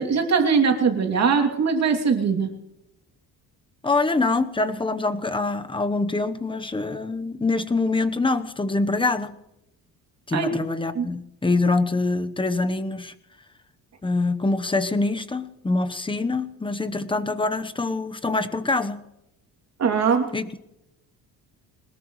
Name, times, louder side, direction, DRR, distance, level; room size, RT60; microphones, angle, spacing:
voice 1, 0.0-2.5 10.3-10.6 10.9-11.1 19.8-20.3, right 5 dB, 45° right, 3 dB, 2.8 m, -21 dB
voice 2, 3.8-9.4 10.3-13.1 14.0-19.0 20.3-20.6, left 3 dB, 15° left, 9 dB, 1.0 m, -25 dB
22.0 x 20.0 x 3.2 m, 0.87 s
cardioid pair, 120°, 36 cm